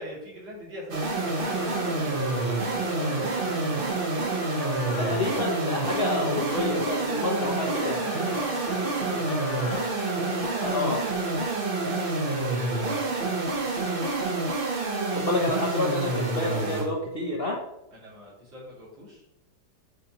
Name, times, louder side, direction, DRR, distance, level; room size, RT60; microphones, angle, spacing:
voice 1, 0.0-2.1 2.3-3.8 8.3-11.0 11.4-11.6 12.2-14.2 17.9-19.2, equal, 70° right, -6 dB, 3.1 m, -44 dB
sound 1, 0.9-16.9, right 3 dB, 45° right, 0.7 m, -28 dB
sound 2, 1.1-11.1, left 3 dB, 45° left, 1.1 m, -39 dB
voice 2, 5.0-8.1 10.6-11.0 15.1-17.6, left 2 dB, 80° left, -1 dB, 0.5 m, -28 dB
8.6 x 4.3 x 2.9 m, 0.91 s
omnidirectional pair, 2.2 m